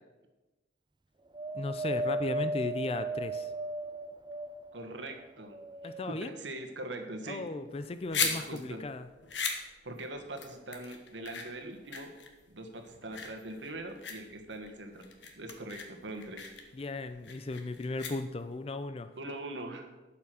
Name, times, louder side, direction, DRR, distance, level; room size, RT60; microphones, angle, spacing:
Wind, 1.3-4.9 5.4-6.5 7.2-7.3, right 2 dB, 25° right, 0.5 m, -36 dB
voice 1, 1.5-3.5 5.8-6.3 7.3-9.1 16.7-19.1, left 2 dB, 30° left, 11 dB, 0.4 m, -36 dB
voice 2, 4.7-5.6 6.1-7.4 8.2-8.8 9.8-12.1 12.5-15.0 15.4-16.5 19.1-20.0, right 1 dB, 80° right, 4 dB, 1.5 m, -42 dB
sound 1, 7.7-18.6, left 6 dB, 75° left, 1.4 m, -39 dB
12.0 x 5.9 x 6.3 m, 1.1 s
head